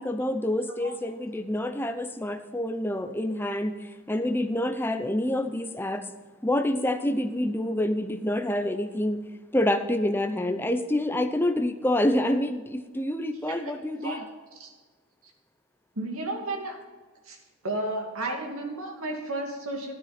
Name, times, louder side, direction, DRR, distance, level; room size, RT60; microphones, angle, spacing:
voice 1, 0.0-3.7 4.1-6.0 6.4-9.2 9.5-14.2, left 1 dB, 10° left, 7 dB, 0.6 m, -27 dB
voice 2, 16.0-16.8 17.3-17.4 17.6-19.9, right 2 dB, 75° right, 1 dB, 2.4 m, -33 dB
12.5 x 9.4 x 4.3 m, 1.4 s
head